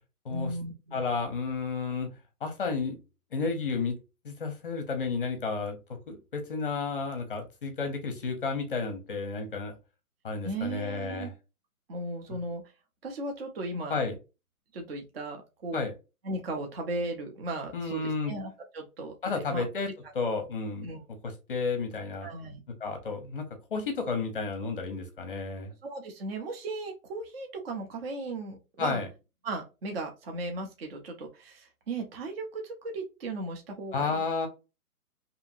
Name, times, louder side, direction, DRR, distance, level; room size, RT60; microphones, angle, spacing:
voice 1, 0.3-1.1 10.4-11.3 11.9-12.6 13.0-14.0 14.7-15.8 16.2-19.7 20.8-21.0 22.2-22.6 25.8-29.0 29.4-34.2, right 2 dB, 40° right, 3 dB, 0.6 m, -36 dB
voice 2, 0.9-2.1 2.4-3.0 3.3-4.0 4.2-5.8 6.1-9.7 10.2-11.3 13.9-14.1 15.7-15.9 17.7-18.4 19.2-19.9 20.1-20.9 21.2-22.3 22.8-25.7 28.8-29.1 33.9-34.5, left 4 dB, 35° left, 5 dB, 0.6 m, -32 dB
2.8 x 2.6 x 2.5 m, 0.28 s
hypercardioid pair, 165°, 44 cm